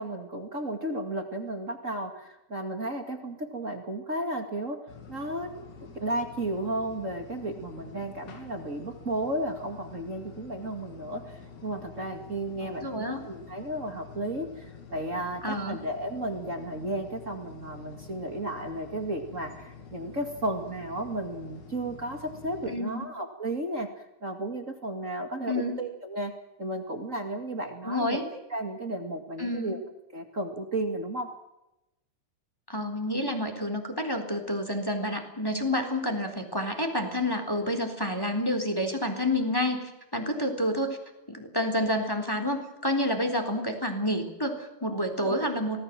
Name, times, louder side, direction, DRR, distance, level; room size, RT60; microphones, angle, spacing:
voice 1, 0.0-4.8 5.1-23.9 24.2-26.3 26.6-28.2 28.5-29.8 30.1-31.3 45.2-45.3, right 1 dB, 25° right, 5 dB, 1.8 m, -33 dB
sound 1, 4.9-22.8, left 5 dB, 75° left, 5.0 m, -48 dB
voice 2, 12.8-13.2 15.4-15.8 22.7-23.1 25.5-25.8 27.8-28.2 29.4-29.8 32.7-39.8 40.1-41.0 41.3-45.8, left 1 dB, 5° left, 5 dB, 3.3 m, -29 dB
27.0 x 19.0 x 7.6 m, 0.93 s
omnidirectional pair, 4.4 m